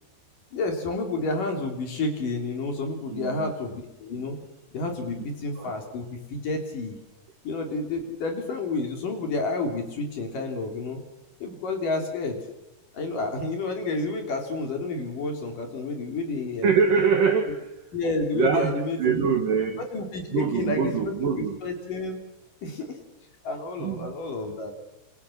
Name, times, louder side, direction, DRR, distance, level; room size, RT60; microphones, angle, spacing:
voice 1, 0.5-4.4 4.7-7.0 7.4-11.0 11.4-12.4 12.9-16.7 17.9-19.3 19.8-21.3 21.6-22.2 22.6-23.0 23.4-24.7, left 3 dB, 45° left, 4 dB, 4.7 m, -30 dB
voice 2, 3.1-3.5 5.2-5.3 5.6-5.7 16.6-17.7 18.3-19.9 20.3-21.6 23.8-24.2, right 6 dB, 60° right, 6 dB, 2.6 m, -24 dB
29.0 x 27.0 x 7.3 m, 0.94 s
omnidirectional pair, 5.5 m